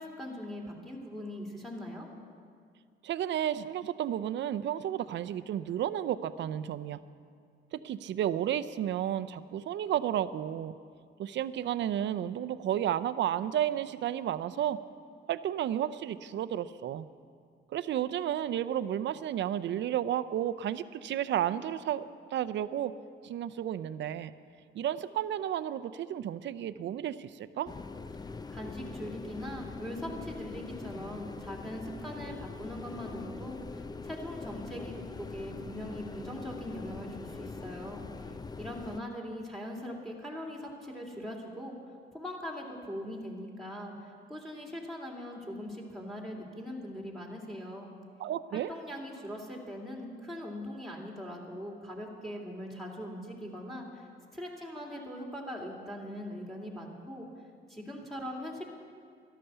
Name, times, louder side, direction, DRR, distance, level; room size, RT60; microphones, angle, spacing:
voice 1, 0.0-2.1 28.5-38.0 38.6-41.8 42.1-47.9 48.5-57.3 57.7-58.6, equal, ahead, 0 dB, 2.7 m, -41 dB
voice 2, 3.0-7.0 7.7-10.7 11.2-14.8 15.3-17.1 17.7-22.9 23.2-24.3 24.7-27.7 48.2-48.7, right 11 dB, 65° right, 13 dB, 0.6 m, -32 dB
sound 1, 27.7-39.0, left 4 dB, 20° left, 0.5 m, -43 dB
13.5 x 11.5 x 6.9 m, 2.1 s
cardioid pair, 90°, 20 cm